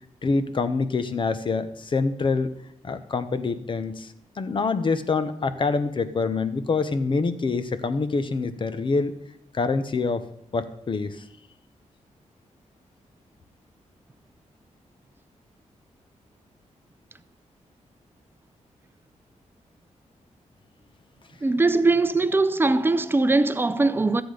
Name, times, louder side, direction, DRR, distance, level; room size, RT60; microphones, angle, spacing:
voice 1, 0.2-2.5 2.8-9.1 9.5-10.2 10.5-11.2, left 4 dB, 40° left, 0.9 m, -26 dB
voice 2, 21.4-24.2, right 3 dB, 15° right, 0.6 m, -21 dB
14.0 x 8.0 x 5.1 m
wide cardioid pair, 130°, 13 cm